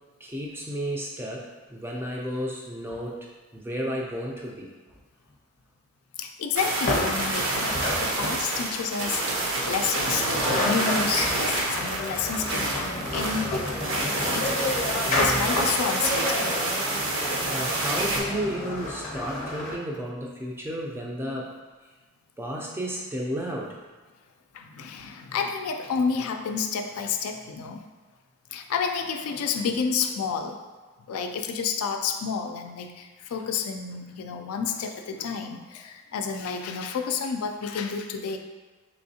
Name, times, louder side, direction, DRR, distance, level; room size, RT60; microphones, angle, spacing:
voice 1, 0.2-4.7 15.1-15.5 17.5-21.5 22.4-23.8, equal, 10° right, -2 dB, 0.3 m, -32 dB
voice 2, 6.2-9.2 9.6-16.6 24.5-27.9 28.5-30.6 31.1-38.4, left 6 dB, 80° left, 5 dB, 0.3 m, -30 dB
sound 1, 6.5-18.2, right 2 dB, 60° right, 0.6 m, -28 dB
sound 2, 6.8-8.6 10.0-10.1 10.3-19.8, left 2 dB, 35° left, 0.6 m, -30 dB
3.5 x 3.0 x 2.7 m, 1.4 s
head